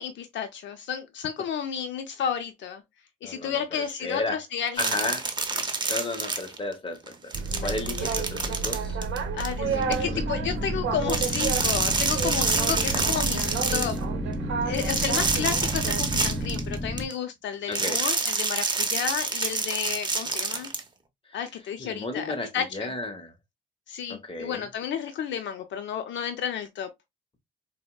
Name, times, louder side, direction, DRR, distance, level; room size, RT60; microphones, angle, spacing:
voice 1, 0.0-2.8 3.2-5.1 7.5-7.7 8.0-8.1 9.3-13.4 13.7-14.0 14.7-20.7 21.3-22.9 23.9-26.9, left 8 dB, 65° left, 0.5 m, -32 dB
voice 2, 3.2-4.4 4.8-5.2 5.9-7.3 7.6-9.0 9.6-10.2 17.7-18.0 21.8-23.3 24.1-24.6, left 2 dB, 25° left, 0.9 m, -33 dB
sound 1, 4.8-6.7 7.1-9.9 11.0-14.0 14.7-17.1 17.7-20.8, right 4 dB, 20° right, 0.6 m, -28 dB
Boat Water vehicle, 7.3-16.6, right 5 dB, 70° right, 0.7 m, -31 dB
sound 2, 9.6-17.1, equal, ahead, 1.3 m, -33 dB
4.2 x 2.0 x 2.2 m
cardioid pair, 90°, 20 cm